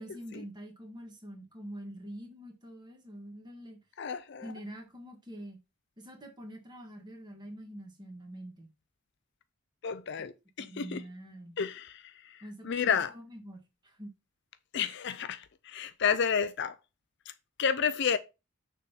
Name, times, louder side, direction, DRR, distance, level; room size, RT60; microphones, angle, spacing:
voice 1, 0.0-3.8 4.4-5.6 6.0-8.7 10.6-11.6 12.4-14.1, equal, 20° right, 1.7 m, -45 dB
voice 2, 4.0-4.5 9.8-10.3 10.6-11.0 11.6-12.4 12.6-13.1 14.7-16.7 17.6-18.2, left 7 dB, 55° left, 0.5 m, -30 dB
6.6 x 3.6 x 5.5 m
head